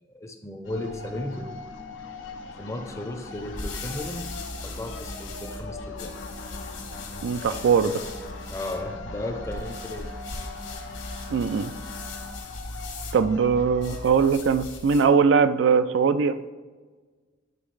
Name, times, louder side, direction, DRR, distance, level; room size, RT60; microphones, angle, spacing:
voice 1, 0.1-1.5 2.6-4.4 4.6-6.2 8.5-10.2, left 1 dB, 15° left, 5 dB, 0.5 m, -35 dB
sound 1, 0.6-14.4, left 2 dB, 90° left, 0.7 m, -40 dB
sound 2, 3.2-15.2, left 2 dB, 70° left, 1.5 m, -39 dB
voice 2, 7.2-8.0 11.3-11.7 13.1-16.5, right 5 dB, 70° right, 11 dB, 0.3 m, -21 dB
9.3 x 3.5 x 3.1 m, 1.4 s
head